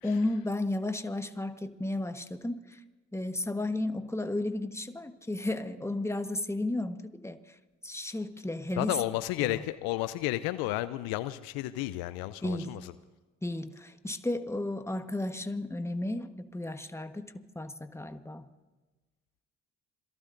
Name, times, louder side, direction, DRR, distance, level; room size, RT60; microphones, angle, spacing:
voice 1, 0.0-2.8 3.1-7.4 7.8-9.0 9.4-9.6 12.4-12.7 13.4-18.5, left 2 dB, 5° left, 8 dB, 1.3 m, -33 dB
voice 2, 8.8-12.9, left 16 dB, 75° left, 15 dB, 0.6 m, -32 dB
27.0 x 18.5 x 2.6 m, 1.2 s
hypercardioid pair, 50°, 37 cm